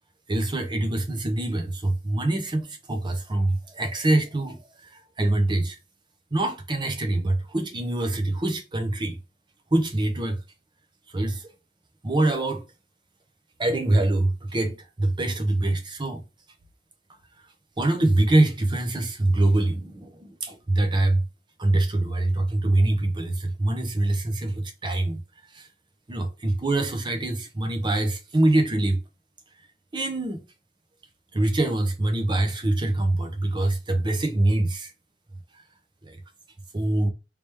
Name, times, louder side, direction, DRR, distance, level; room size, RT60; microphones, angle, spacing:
voice 1, 0.3-5.8 6.3-9.2 9.7-10.4 11.1-11.5 12.0-12.6 13.6-16.2 17.8-21.2 21.6-25.2 25.5-25.7 26.1-29.0 29.9-30.4 31.3-34.9 36.0-36.2 36.7-37.1, right 2 dB, 25° right, 0.7 m, -24 dB
3.3 x 2.9 x 3.2 m
head